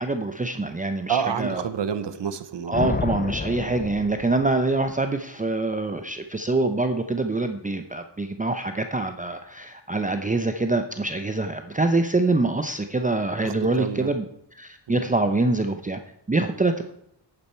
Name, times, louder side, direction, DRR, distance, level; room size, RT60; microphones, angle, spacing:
voice 1, 0.0-1.6 2.7-14.2 14.6-16.0 16.3-16.8, right 2 dB, 20° right, 7 dB, 0.7 m, -25 dB
voice 2, 1.1-3.0 13.4-14.1 14.9-15.0, right 7 dB, 85° right, 12 dB, 0.9 m, -29 dB
Thunder, 2.7-4.9, left 5 dB, 25° left, 0.4 m, -31 dB
11.0 x 8.8 x 4.5 m, 0.76 s
wide cardioid pair, 85°, 41 cm